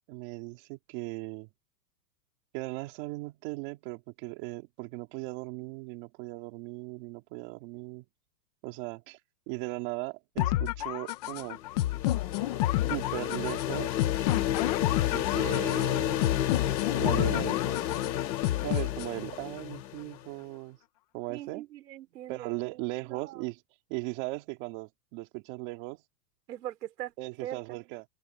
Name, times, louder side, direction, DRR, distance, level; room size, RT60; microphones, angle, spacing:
voice 1, 0.1-1.5 2.5-8.0 8.6-9.2 9.5-11.6 12.9-14.0 15.0-16.4 16.9-17.6 18.6-20.8 21.1-21.6 22.3-23.6 23.9-26.0 27.2-28.0, right 23 dB, 30° right, 3.1 m, -38 dB
sound 1, 10.4-19.4, left 15 dB, 25° left, 0.8 m, -30 dB
sound 2, 11.4-20.2, left 11 dB, 85° left, 1.8 m, -31 dB
voice 2, 21.3-22.5 23.0-23.4 26.5-27.1 27.4-27.6, right 12 dB, 70° right, 3.7 m, -40 dB
open air
supercardioid pair, 175°, 50 cm